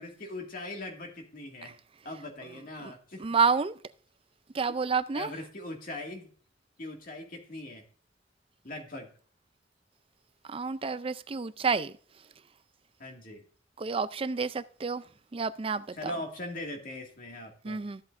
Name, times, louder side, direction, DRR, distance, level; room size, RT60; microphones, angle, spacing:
voice 1, 0.0-1.8 2.0-3.2 5.1-6.3 6.8-7.8 8.6-9.1 13.0-13.4 15.9-17.8, left 2 dB, 45° left, 2.1 m, -40 dB
voice 2, 3.2-3.7 4.5-5.3 10.5-11.9 13.8-15.0 15.3-16.1 17.6-18.0, right 5 dB, 30° right, 0.4 m, -29 dB
14.0 x 8.1 x 2.6 m
head